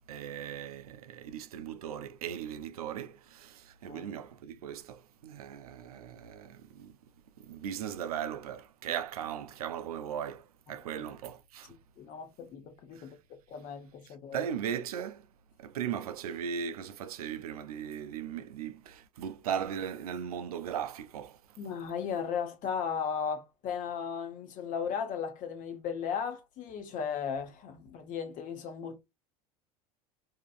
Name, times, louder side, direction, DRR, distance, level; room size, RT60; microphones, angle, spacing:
voice 1, 0.1-7.0 7.4-11.7 12.9-13.1 14.1-15.3 15.6-21.4, right 8 dB, 85° right, 0.5 m, -38 dB
voice 2, 12.0-14.4 21.6-29.0, left 7 dB, 45° left, 1.0 m, -36 dB
2.8 x 2.5 x 2.4 m
hypercardioid pair, 95°, 18 cm